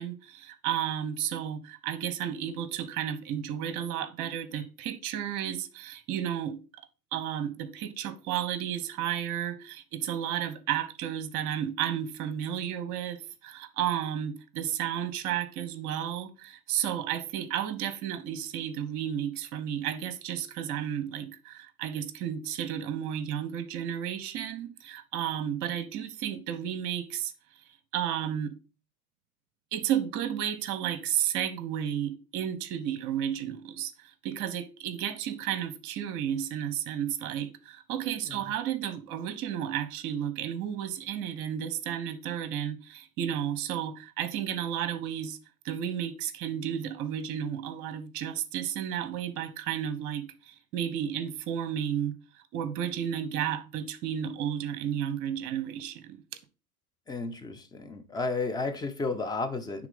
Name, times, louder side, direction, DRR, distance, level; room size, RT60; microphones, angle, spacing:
voice 1, 0.0-6.6 7.1-27.3 27.9-28.6 29.7-33.9 34.2-45.4 45.6-52.1 52.5-56.2, right 10 dB, 40° right, 1.1 m, -32 dB
voice 2, 57.1-59.9, left 3 dB, 10° left, 0.8 m, -32 dB
9.6 x 3.8 x 5.2 m
figure-of-eight pair, 95°, 46 cm